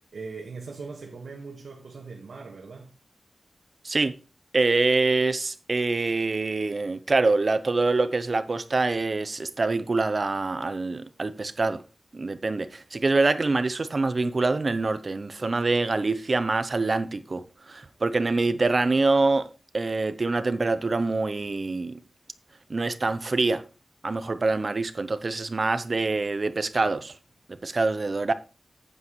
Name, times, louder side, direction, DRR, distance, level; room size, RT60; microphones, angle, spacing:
voice 1, 0.1-2.9, right 4 dB, 80° right, 1.7 m, -40 dB
voice 2, 3.8-4.2 4.5-11.8 12.1-19.5 19.7-22.0 22.7-23.6 24.0-27.1 27.5-28.3, right 3 dB, 40° right, 0.7 m, -25 dB
9.2 x 8.4 x 3.2 m
wide cardioid pair, 120°, 0 cm